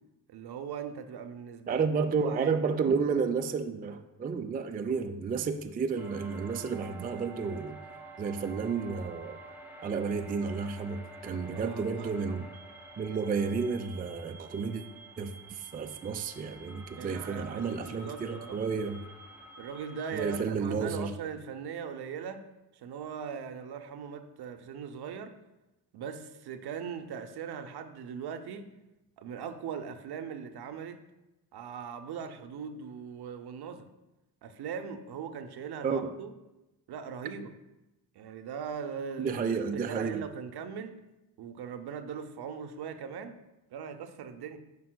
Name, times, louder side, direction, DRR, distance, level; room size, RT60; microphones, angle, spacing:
voice 1, 0.3-1.9 2.2-2.6 11.5-12.5 17.0-18.6 19.6-22.5 22.7-25.3 25.9-28.7 29.2-31.0 31.5-33.9 34.4-36.3 36.9-37.5 38.1-39.4 39.7-40.9 41.4-43.4 43.7-44.6, right 7 dB, 55° right, 9 dB, 0.7 m, -40 dB
voice 2, 1.7-7.8 8.2-9.4 9.8-12.4 13.0-14.8 15.2-19.1 20.1-21.1 35.8-36.1 39.2-40.2, right 5 dB, 20° right, 7 dB, 0.4 m, -31 dB
sound 1, 6.0-20.4, right 2 dB, 5° right, 0.9 m, -49 dB
9.3 x 5.3 x 2.2 m, 0.98 s
hypercardioid pair, 40°, 47 cm